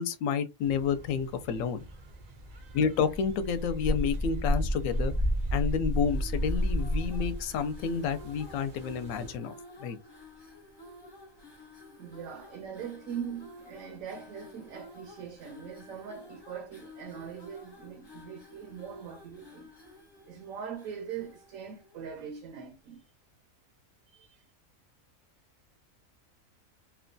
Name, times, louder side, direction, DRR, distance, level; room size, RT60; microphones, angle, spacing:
voice 1, 0.0-1.8 2.7-5.1 5.5-9.5 9.8-10.0, left 6 dB, 75° left, 0.9 m, -30 dB
sound 1, 0.6-9.4, equal, 55° right, 0.5 m, -33 dB
sound 2, 6.0-22.5, left 2 dB, 25° left, 0.5 m, -52 dB
voice 2, 12.0-23.0 24.1-24.4, right 7 dB, 75° right, 1.0 m, -42 dB
2.9 x 2.2 x 2.5 m
omnidirectional pair, 1.4 m